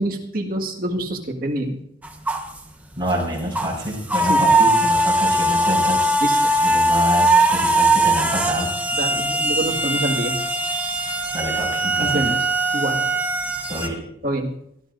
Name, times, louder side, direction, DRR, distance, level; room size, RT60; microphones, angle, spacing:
voice 1, 0.0-1.8 4.3-4.5 6.2-6.5 8.9-10.4 12.0-12.4 12.7-13.0 14.2-14.5, right 1 dB, 55° right, 0 dB, 1.9 m, -26 dB
sound 1, 2.0-2.6 3.1-3.2 3.5-13.9, right 1 dB, 10° right, 1.2 m, -20 dB
voice 2, 3.0-8.7 11.3-12.3 13.7-14.0, equal, 25° right, -2 dB, 5.2 m, -27 dB
22.0 x 13.5 x 2.6 m, 0.75 s
head